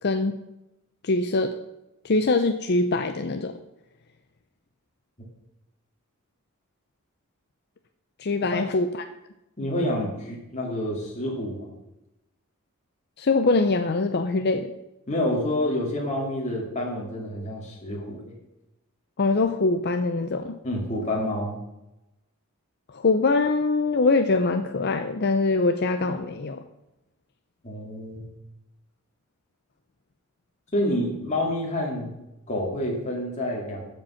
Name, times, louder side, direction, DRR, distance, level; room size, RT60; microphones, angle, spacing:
voice 1, 0.0-0.4 1.0-1.5 2.0-3.5 8.2-9.0 13.2-14.7 19.2-20.6 22.9-26.6, left 3 dB, 50° left, 7 dB, 0.6 m, -23 dB
voice 2, 9.6-11.7 15.1-18.3 20.6-21.5 27.6-28.2 30.7-32.1 32.5-33.8, left 1 dB, 35° left, -2 dB, 2.3 m, -28 dB
14.5 x 5.4 x 5.7 m, 0.94 s
head